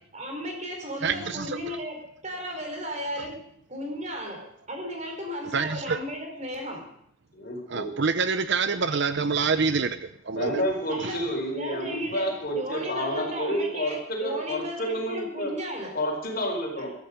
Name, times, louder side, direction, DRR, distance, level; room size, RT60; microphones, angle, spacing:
voice 1, 0.1-3.3 3.7-6.9 10.9-11.2 11.5-16.0 16.8-16.9, equal, 35° right, 2 dB, 4.5 m, -35 dB
voice 2, 1.0-1.8 5.5-6.0 7.7-10.6 11.0-11.2, right 5 dB, 55° right, 11 dB, 0.7 m, -27 dB
voice 3, 7.3-7.9 10.3-13.9 14.2-15.5 15.9-16.9, equal, 45° left, 2 dB, 4.8 m, -29 dB
20.5 x 13.5 x 5.2 m, 0.71 s
head